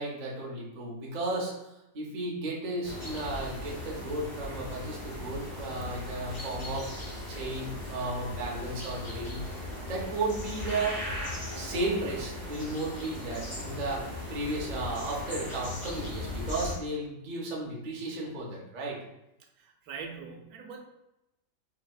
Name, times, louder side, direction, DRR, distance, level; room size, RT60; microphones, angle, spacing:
voice 1, 0.0-6.9 7.3-9.4 9.9-11.0 11.5-19.0, right 2 dB, 40° right, -3 dB, 0.6 m, -34 dB
sound 1, 2.8-16.8, left 1 dB, 30° left, 1.3 m, -38 dB
sound 2, 3.2-4.0 4.4-7.9 8.3-10.9, equal, 65° left, 1.4 m, -51 dB
voice 2, 19.6-20.8, right 5 dB, 85° right, 2 dB, 1.1 m, -42 dB
4.1 x 2.7 x 2.2 m, 0.89 s
omnidirectional pair, 1.5 m